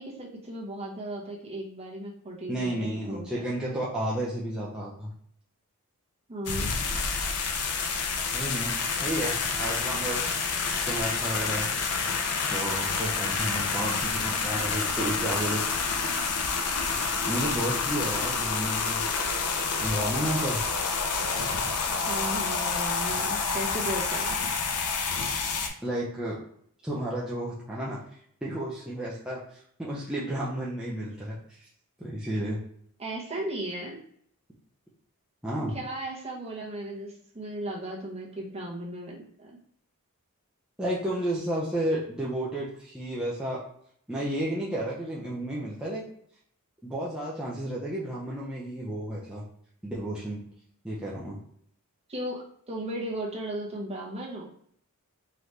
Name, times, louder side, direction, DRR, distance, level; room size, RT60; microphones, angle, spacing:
voice 1, 0.0-3.5 6.3-6.7 22.1-24.4 33.0-34.0 35.7-39.6 52.1-54.5, right 1 dB, 30° right, -2 dB, 1.0 m, -36 dB
voice 2, 2.5-5.1 6.8-7.0 8.3-10.3 10.8-11.7 12.5-15.7 17.3-19.0 19.8-20.6 25.8-26.4 26.8-28.0 28.4-31.7 32.0-32.6 35.4-35.8 40.8-43.6 44.1-46.0 46.8-49.4 49.8-50.4 50.8-51.4, right 1 dB, 5° right, -7 dB, 0.6 m, -32 dB
sound 1, 6.5-25.7, left 5 dB, 90° left, 0.6 m, -28 dB
3.9 x 3.1 x 3.3 m, 0.65 s
head